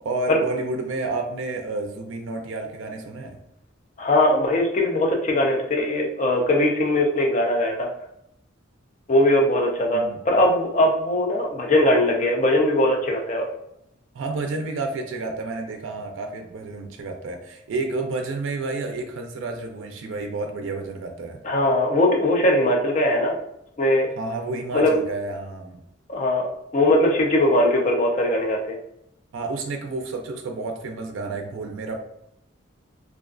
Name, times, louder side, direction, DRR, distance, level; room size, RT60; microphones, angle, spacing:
voice 1, 0.0-3.4 9.9-10.2 14.1-21.4 24.2-25.8 29.3-32.0, right 3 dB, 75° right, 4 dB, 0.3 m, -30 dB
voice 2, 4.0-7.9 9.1-13.5 21.4-23.4 23.8-24.1 24.7-25.0 26.1-26.5 26.7-28.8, left 1 dB, 35° left, 1 dB, 0.4 m, -20 dB
2.3 x 2.2 x 2.4 m, 0.78 s
head